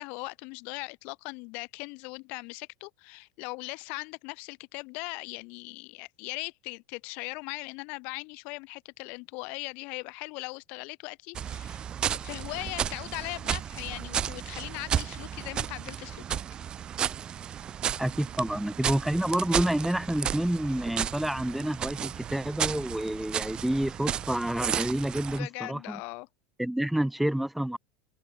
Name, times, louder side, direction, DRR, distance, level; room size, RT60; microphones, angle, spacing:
voice 1, 0.0-11.9 12.2-16.4 25.3-26.3, left 30 dB, 55° left, 4.3 m, -39 dB
sound 1, 11.3-25.4, right 9 dB, 35° right, 7.4 m, -33 dB
voice 2, 18.0-26.0 26.6-27.8, right 1 dB, 5° right, 3.1 m, -29 dB
figure-of-eight pair, 80°, 3 cm